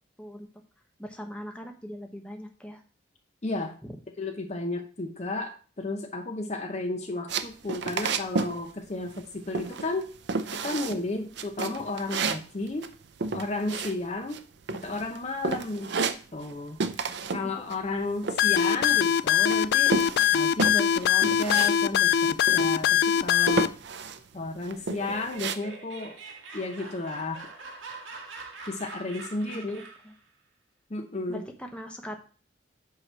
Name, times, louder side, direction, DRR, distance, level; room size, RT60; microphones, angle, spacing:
voice 1, 1.0-2.8 3.8-4.0 17.4-17.5 29.5-30.1 31.3-32.2, equal, 5° left, 3 dB, 1.0 m, -41 dB
voice 2, 3.4-3.8 4.2-10.1 10.5-12.9 13.3-14.4 14.8-17.0 17.3-20.0 20.3-23.7 24.3-26.2 26.5-27.5 28.7-29.8 30.9-31.5, left 2 dB, 35° left, 4 dB, 0.7 m, -33 dB
sound 1, 7.3-8.6 8.8-9.3 9.5-10.0 10.3-11.0 11.4-14.4 14.7-15.2 15.4-16.6 16.8-17.5 17.7-19.2 19.5-21.7 22.0-22.1 22.4-23.0 23.5-24.2 24.6-25.6, right 4 dB, 60° right, 0.5 m, -31 dB
sound 2, 18.4-23.7, left 9 dB, 55° left, 0.3 m, -22 dB
Laughter, 24.7-30.2, right 3 dB, 80° right, 1.5 m, -44 dB
8.0 x 3.0 x 6.1 m, 0.38 s
head